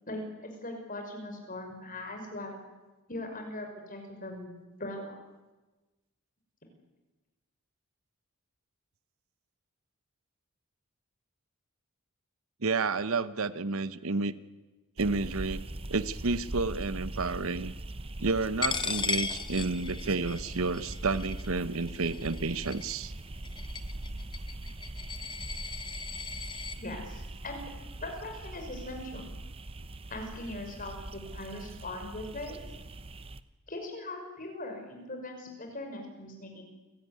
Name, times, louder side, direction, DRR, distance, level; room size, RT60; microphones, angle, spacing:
voice 1, 0.1-2.6 3.1-4.5 4.8-5.1 26.8-27.7 28.0-29.3 30.1-32.6 33.7-36.6, left 1 dB, 40° left, 3 dB, 5.7 m, -40 dB
voice 2, 12.6-14.3 15.0-15.6 15.9-17.7 18.2-23.1, right 3 dB, 70° right, 14 dB, 0.9 m, -30 dB
sound 1, 15.0-33.4, right 1 dB, 25° right, 0.8 m, -41 dB
Coin (dropping), 18.6-26.8, left 5 dB, 20° left, 1.0 m, -37 dB
28.5 x 16.5 x 9.7 m, 1.2 s
head